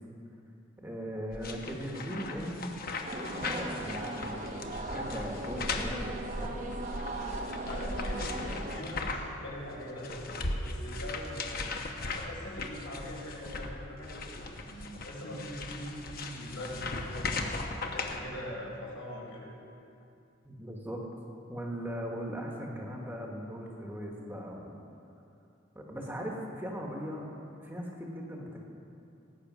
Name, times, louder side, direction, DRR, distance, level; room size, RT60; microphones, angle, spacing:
voice 1, 0.8-6.7 20.4-21.0 21.5-24.8 25.7-27.3 27.6-28.6, equal, 10° right, -1 dB, 1.2 m, -39 dB
sound 1, 1.3-9.4 9.7-18.2, left 3 dB, 45° left, 0.9 m, -38 dB
sound 2, 3.0-8.8, right 1 dB, 35° right, 0.9 m, -37 dB
voice 2, 7.7-11.6 12.1-14.4 14.7-17.4 17.9-19.5, left 1 dB, 75° left, -4 dB, 4.1 m, -42 dB
17.5 x 8.4 x 6.0 m, 2.7 s
head